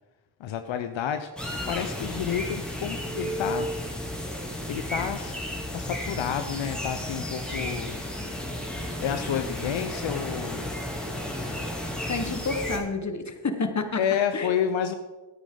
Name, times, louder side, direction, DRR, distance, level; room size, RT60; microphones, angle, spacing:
voice 1, 0.4-1.3 1.7-3.7 4.7-5.3 5.7-8.0 9.0-10.8 14.0-14.9, left 8 dB, 75° left, 8 dB, 0.7 m, -29 dB
sound 1, 1.4-12.8, left 1 dB, ahead, 2.8 m, -33 dB
voice 2, 12.1-14.0 14.3-14.6, left 4 dB, 35° left, 7 dB, 1.5 m, -29 dB
13.0 x 9.2 x 3.9 m, 1.2 s
supercardioid pair, 45°, 46 cm